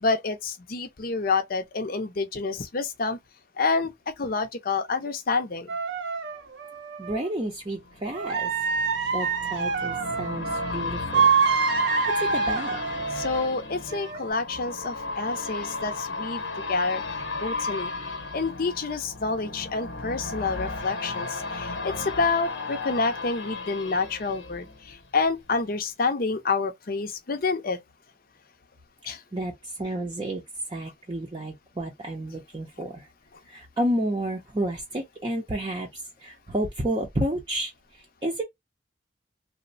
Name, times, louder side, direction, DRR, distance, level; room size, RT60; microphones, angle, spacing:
voice 1, 0.0-3.2 3.6-5.7 13.1-16.4 16.7-17.0 17.4-17.9 18.3-27.8 29.1-29.2, left 4 dB, 50° left, 0.6 m, -28 dB
sound 1, 5.7-7.2 8.1-10.7 11.1-13.5 13.9-14.3, right 5 dB, 70° right, 0.6 m, -26 dB
voice 2, 7.0-8.5 9.1-11.3 12.2-12.8 29.3-29.5 29.8-30.4 30.7-33.1 33.5-38.4, right 1 dB, 25° right, 0.6 m, -31 dB
sound 2, 7.5-25.3 25.7-25.8, left 3 dB, 85° left, 0.9 m, -35 dB
3.1 x 2.1 x 2.5 m
head